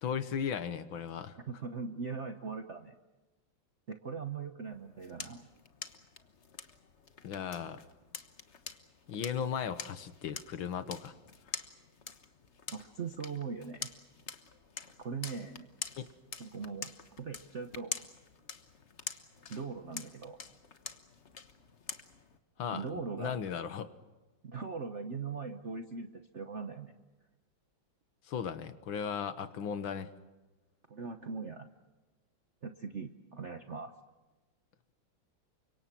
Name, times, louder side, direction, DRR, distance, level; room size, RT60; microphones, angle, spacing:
voice 1, 0.0-1.4 7.2-7.8 9.1-11.1 16.0-16.1 22.6-23.9 28.3-30.1, left 7 dB, 80° left, 12 dB, 2.0 m, -36 dB
voice 2, 1.5-3.0 3.9-5.5 12.7-13.9 15.0-15.7 16.4-17.9 19.5-20.4 22.7-23.4 24.4-26.9 30.9-31.7 32.6-33.9, right 5 dB, 45° right, 7 dB, 1.2 m, -40 dB
sound 1, 4.7-22.4, left 5 dB, 40° left, 1.4 m, -46 dB
30.0 x 25.5 x 6.1 m, 1.2 s
omnidirectional pair, 2.2 m